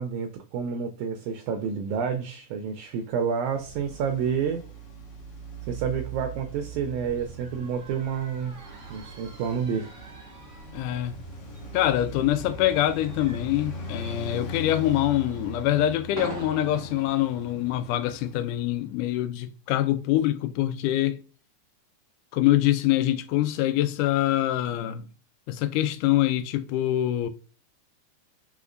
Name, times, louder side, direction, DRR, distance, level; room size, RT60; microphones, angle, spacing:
voice 1, 0.0-4.6 5.7-8.5 8.9-9.9, right 7 dB, 80° right, 1.9 m, -29 dB
sound 1, 1.1-18.3, right 4 dB, 60° right, 1.5 m, -49 dB
Traffic noise roadway noise, 3.5-18.9, right 1 dB, 60° left, 1.6 m, -40 dB
voice 2, 10.7-11.1 11.7-21.2 22.3-25.1 25.5-27.3, left 13 dB, 85° left, 2.1 m, -25 dB
5.1 x 3.5 x 2.5 m
omnidirectional pair, 3.6 m